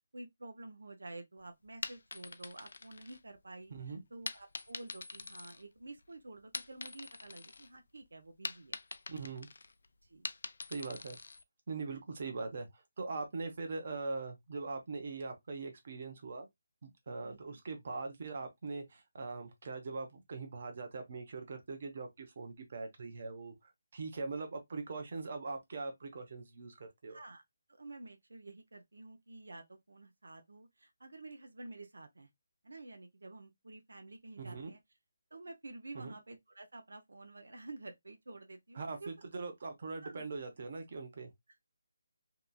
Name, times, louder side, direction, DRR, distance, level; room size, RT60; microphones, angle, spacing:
voice 1, 0.1-8.8 10.0-10.3 17.2-17.6 27.1-27.4 27.7-32.3 32.6-34.8 35.3-39.1 40.0-40.3, right 2 dB, 85° right, 0.6 m, -50 dB
sound 1, 1.7-3.6 4.3-6.0 6.4-7.7 8.0-11.4, left 3 dB, 65° left, 0.3 m, -44 dB
voice 2, 3.7-4.0 9.1-9.5 10.7-11.2 11.7-16.5 16.8-26.8 27.0-27.2 34.4-34.7 35.9-36.1 38.7-41.3, right 3 dB, 40° right, 0.8 m, -41 dB
2.9 x 2.5 x 2.2 m
hypercardioid pair, 170°, 0 cm